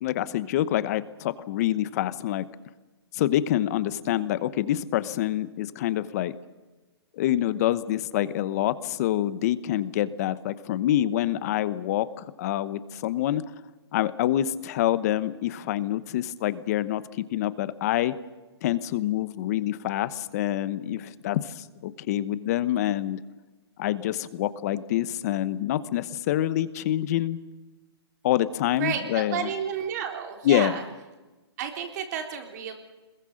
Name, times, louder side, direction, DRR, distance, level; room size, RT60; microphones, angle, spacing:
voice 1, 0.0-2.5 3.1-6.3 7.1-13.4 13.9-18.1 18.6-23.2 23.8-27.4 28.2-29.5 30.4-30.8, left 12 dB, 35° left, 15 dB, 1.0 m, -26 dB
voice 2, 28.8-30.8 31.6-32.7, right 8 dB, 40° right, 4 dB, 3.6 m, -31 dB
26.5 x 21.5 x 6.5 m, 1.2 s
hypercardioid pair, 155°, 14 cm